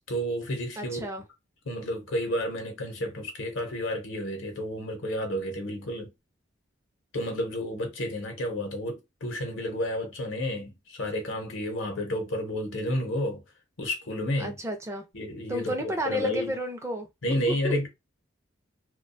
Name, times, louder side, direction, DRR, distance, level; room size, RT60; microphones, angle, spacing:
voice 1, 0.1-1.0 1.7-6.1 7.1-13.4 13.8-14.6 15.1-16.5 17.2-17.9, left 1 dB, 80° left, 0.7 m, -31 dB
voice 2, 0.8-1.2 14.4-15.0 15.5-17.7, right 1 dB, 15° right, 0.4 m, -32 dB
2.3 x 2.2 x 2.5 m
head